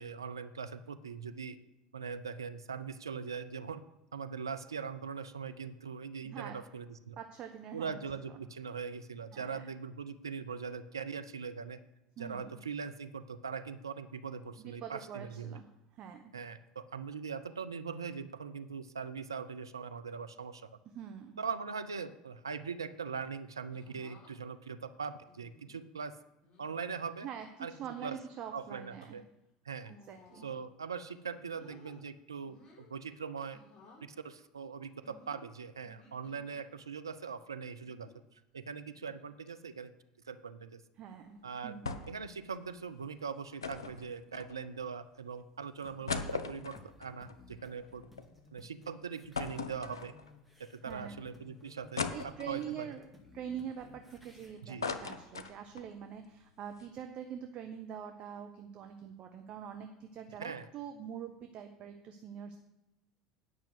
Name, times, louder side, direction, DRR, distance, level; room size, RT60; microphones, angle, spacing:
voice 1, 0.0-1.6 1.9-3.8 4.1-7.2 7.7-11.8 12.2-15.6 16.3-20.7 21.4-26.1 26.6-27.3 27.6-27.7 28.0-28.2 28.5-29.2 29.6-29.9 30.4-33.6 34.0-38.1 38.5-39.9 40.3-40.8 41.4-41.8 42.1-48.0 48.5-50.1 50.6-52.9 54.6-54.9 60.4-60.7, right 6 dB, 90° right, 10 dB, 0.6 m, -41 dB
voice 2, 6.2-6.6 7.2-8.0 9.3-9.7 12.2-12.6 14.6-15.7 15.9-16.2 20.9-21.4 27.2-29.2 30.1-30.5 41.0-41.9 50.8-51.2 52.1-53.1 53.3-62.6, right 8 dB, 50° right, 6 dB, 1.0 m, -44 dB
sound 1, 23.7-24.3 25.3-25.8 26.4-26.7 27.7-28.3 28.8-29.1 29.8-30.7 31.1-32.0 32.4-32.9 33.5-34.1 35.0-36.6 37.8-38.2 38.9-39.2 39.5-39.6 41.2-41.6 42.6-42.9, left 3 dB, 35° left, 3.7 m, -60 dB
sound 2, 41.8-42.3 42.6-42.7 43.6-44.9 45.4-45.5 45.8-48.3 48.7-48.8 49.3-50.5 51.0-51.1 52.0-52.8 53.4-54.3 54.6-55.9 56.3-56.4 56.6-56.9, left 5 dB, 85° left, 0.7 m, -39 dB
sound 3, 45.8-54.5, left 2 dB, 5° left, 2.2 m, -58 dB
9.5 x 5.9 x 7.8 m, 0.92 s
hypercardioid pair, 75°, 2 cm